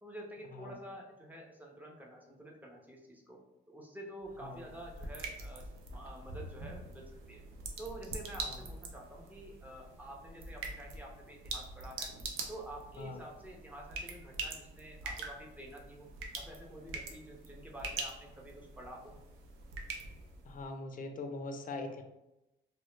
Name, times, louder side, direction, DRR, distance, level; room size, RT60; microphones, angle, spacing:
voice 1, 0.0-3.4 3.7-7.4 7.8-12.1 12.5-16.1 16.4-19.1, right 1 dB, 10° right, -1 dB, 0.5 m, -49 dB
sound 1, 4.2-20.7, right 3 dB, 85° right, 0.5 m, -44 dB
voice 2, 20.5-22.0, left 2 dB, 45° left, 5 dB, 0.4 m, -42 dB
2.1 x 2.0 x 3.0 m, 0.94 s
cardioid pair, 90°, 20 cm